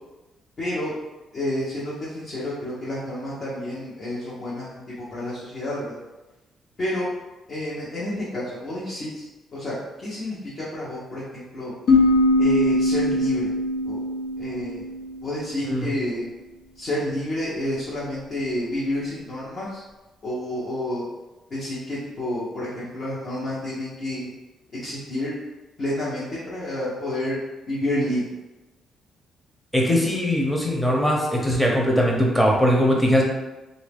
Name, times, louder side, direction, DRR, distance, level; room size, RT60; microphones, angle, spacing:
voice 1, 0.6-0.9 1.3-6.0 6.8-7.1 7.5-9.2 9.5-11.7 12.4-13.5 13.9-14.0 14.4-14.8 15.2-16.2 16.7-19.8 20.2-21.0 21.5-24.3 24.8-25.3 25.8-27.4 27.7-28.3, left 1 dB, 45° left, -9 dB, 1.1 m, -29 dB
sound 1, 11.9-15.5, left 2 dB, 75° left, 0.7 m, -21 dB
voice 2, 29.7-33.2, equal, 5° left, -2 dB, 0.8 m, -20 dB
2.9 x 2.7 x 3.5 m, 1.1 s
cardioid pair, 90°, 0 cm